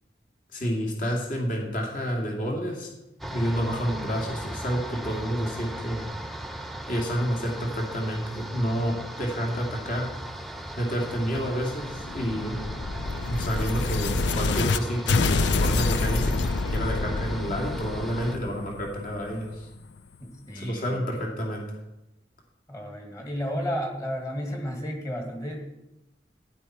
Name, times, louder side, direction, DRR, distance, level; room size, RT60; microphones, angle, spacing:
voice 1, 0.5-2.9 3.2-6.1 6.9-10.1 10.8-12.6 13.3-16.4 16.7-19.7 20.5-21.6, equal, 50° left, 0 dB, 2.5 m, -29 dB
sound 1, 3.2-18.4, right 1 dB, ahead, 0.7 m, -38 dB
sound 2, 11.4-14.8 15.1-19.8, left 3 dB, 85° left, 0.6 m, -27 dB
voice 2, 20.2-21.3 22.7-25.7, equal, 20° left, 2 dB, 2.0 m, -33 dB
12.0 x 10.5 x 4.6 m, 0.95 s
head